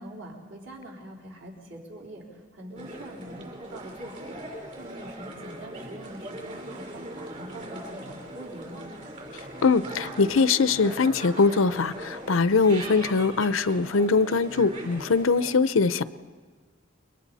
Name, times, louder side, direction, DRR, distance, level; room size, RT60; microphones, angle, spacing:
voice 1, 0.0-2.2 2.5-8.9, right 1 dB, 65° right, -2 dB, 4.4 m, -43 dB
sound 1, 2.8-15.5, right 1 dB, 40° right, 4.0 m, -40 dB
voice 2, 9.6-16.0, left 4 dB, 80° left, 15 dB, 0.7 m, -22 dB
29.5 x 23.0 x 4.2 m, 1.5 s
head